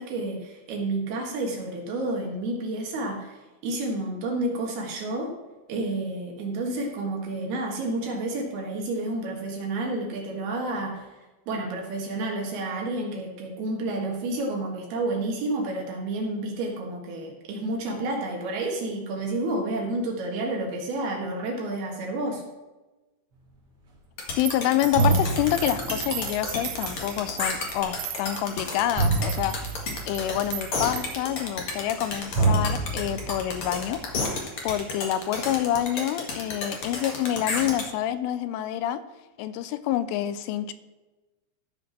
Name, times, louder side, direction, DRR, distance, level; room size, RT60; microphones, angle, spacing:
voice 1, 0.0-5.3 5.7-11.1 11.5-22.4, right 2 dB, 65° right, 0 dB, 3.2 m, -30 dB
sound 1, 24.2-37.8, left 3 dB, 70° left, 1.3 m, -32 dB
voice 2, 24.4-29.6 30.1-34.0 34.6-39.0 39.4-40.7, left 12 dB, 85° left, 13 dB, 3.2 m, -27 dB
sound 2, 24.4-24.5 25.0-32.1 32.3-34.4, right 3 dB, 40° right, 2.4 m, -29 dB
sound 3, 24.5-31.3, right 13 dB, 90° right, 2.4 m, -38 dB
14.0 x 5.2 x 6.0 m, 1.1 s
omnidirectional pair, 5.5 m